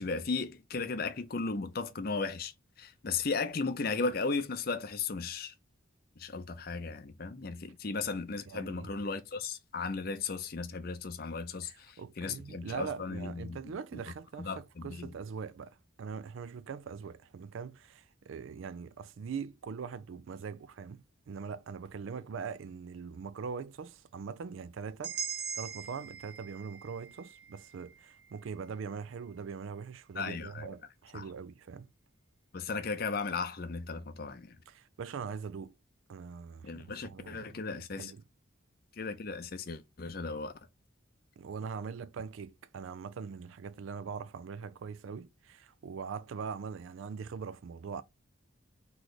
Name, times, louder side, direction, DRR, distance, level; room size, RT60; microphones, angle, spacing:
voice 1, 0.0-2.5 2.8-5.5 6.2-14.0 14.4-15.1 30.2-30.7 31.1-31.3 32.5-34.6 36.6-38.1 39.0-40.5, left 4 dB, 45° left, 0.5 m, -36 dB
voice 2, 8.5-8.9 11.6-25.2 25.5-31.9 34.7-35.8 36.1-38.2 41.4-48.0, right 6 dB, 70° right, 0.4 m, -42 dB
sound 1, 25.0-29.1, right 7 dB, 50° right, 0.9 m, -42 dB
3.2 x 3.1 x 3.9 m
head